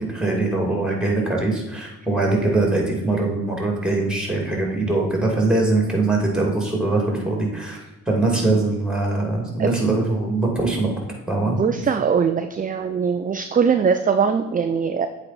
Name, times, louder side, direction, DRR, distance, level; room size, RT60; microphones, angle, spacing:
voice 1, 0.0-10.9 11.3-11.9, right 2 dB, ahead, 0 dB, 2.5 m, -22 dB
voice 2, 11.5-15.1, right 6 dB, 20° right, 9 dB, 0.4 m, -21 dB
7.9 x 4.1 x 4.2 m, 1.1 s
hypercardioid pair, 40°, 43 cm